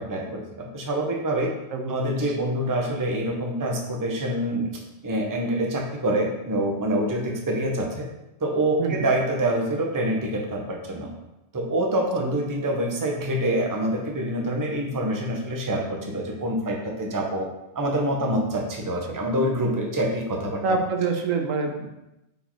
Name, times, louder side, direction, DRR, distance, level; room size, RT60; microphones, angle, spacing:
voice 1, 0.0-1.5 1.9-4.7 5.0-8.1 8.4-11.1 11.5-17.5 17.7-20.8, right 1 dB, 20° right, 1 dB, 0.7 m, -26 dB
voice 2, 1.7-2.2 8.8-9.1 12.2-12.3 20.6-21.9, right 4 dB, 85° right, 3 dB, 1.2 m, -26 dB
5.5 x 4.6 x 4.4 m, 0.93 s
omnidirectional pair, 1.3 m